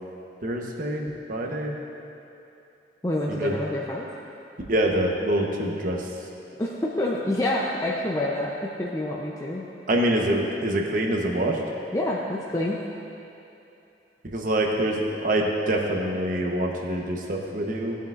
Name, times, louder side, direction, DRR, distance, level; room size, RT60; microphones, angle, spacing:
voice 1, 0.4-1.8 3.3-3.5 4.7-6.1 9.9-11.6 14.2-18.0, right 1 dB, 45° right, 0 dB, 1.0 m, -25 dB
voice 2, 3.0-4.1 6.6-9.6 11.9-12.8, left 1 dB, 15° left, -4 dB, 0.6 m, -27 dB
17.5 x 9.3 x 2.5 m, 2.8 s
head